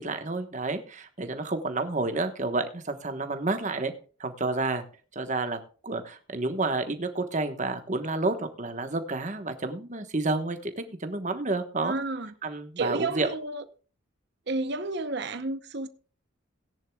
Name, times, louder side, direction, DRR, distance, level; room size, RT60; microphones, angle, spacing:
voice 1, 0.0-3.9 4.2-4.8 5.1-12.0 12.4-13.3, right 3 dB, 35° right, 1.2 m, -30 dB
voice 2, 11.8-12.3 12.8-13.6 14.5-15.9, right 3 dB, 55° right, 0.8 m, -31 dB
17.5 x 10.5 x 2.3 m
head